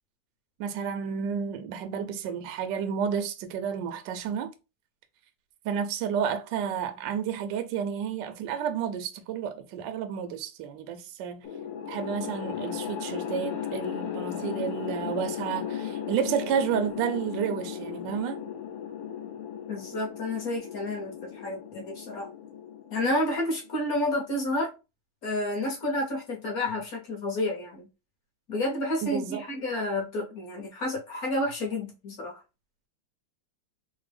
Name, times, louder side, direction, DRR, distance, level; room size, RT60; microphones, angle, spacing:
voice 1, 0.6-4.5 5.6-11.5 11.9-18.4 29.0-29.4, right 8 dB, 75° right, 1.0 m, -31 dB
sound 1, 11.4-23.8, left 8 dB, 75° left, 1.4 m, -36 dB
voice 2, 19.7-22.3 22.9-24.7 25.2-27.9 28.5-32.4, left 1 dB, 55° left, 1.1 m, -30 dB
3.4 x 2.1 x 3.2 m
omnidirectional pair, 2.4 m